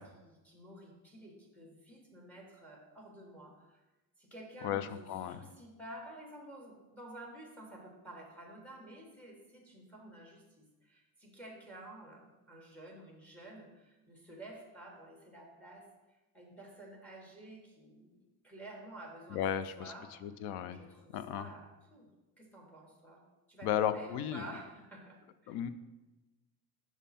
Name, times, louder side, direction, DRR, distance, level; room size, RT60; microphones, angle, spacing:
voice 1, 0.0-3.8 4.2-20.3 20.7-22.1 22.4-23.2 23.5-25.7, right 1 dB, 5° left, 0 dB, 1.3 m, -51 dB
voice 2, 4.6-5.4 19.3-19.9 20.2-20.8 21.1-21.5 23.6-24.4 25.5-25.7, left 10 dB, 80° left, 13 dB, 0.6 m, -34 dB
6.2 x 5.4 x 4.2 m, 1.1 s
cardioid pair, 155°, 39 cm